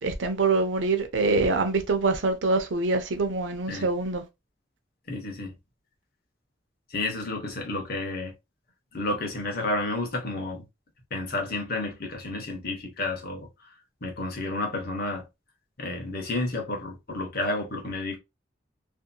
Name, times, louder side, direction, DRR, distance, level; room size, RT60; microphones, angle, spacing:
voice 1, 0.0-4.2, right 3 dB, 85° right, 0.6 m, -25 dB
voice 2, 5.1-5.5 6.9-8.3 8.9-10.6 11.1-13.5 14.0-15.3 15.8-18.2, left 2 dB, 55° left, 0.9 m, -31 dB
2.7 x 2.6 x 2.2 m
head